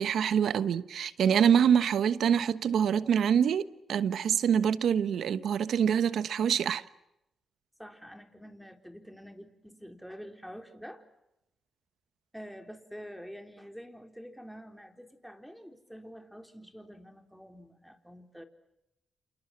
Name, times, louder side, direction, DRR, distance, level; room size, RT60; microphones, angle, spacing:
voice 1, 0.0-3.6 3.9-6.8, right 8 dB, 75° right, 1.1 m, -25 dB
voice 2, 7.8-11.0 12.3-18.4, equal, ahead, 4.2 m, -47 dB
28.5 x 28.5 x 6.0 m
supercardioid pair, 60°, 0 cm